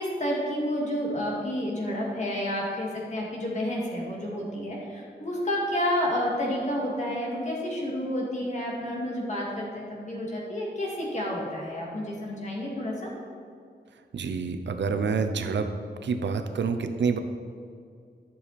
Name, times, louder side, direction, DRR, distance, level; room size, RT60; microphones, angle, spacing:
voice 1, 0.0-13.1, left 1 dB, 40° left, -3 dB, 2.2 m, -30 dB
voice 2, 14.1-15.7 16.0-17.2, right 5 dB, 75° right, 7 dB, 0.7 m, -27 dB
11.5 x 7.1 x 4.2 m, 2.3 s
wide cardioid pair, 160°, 19 cm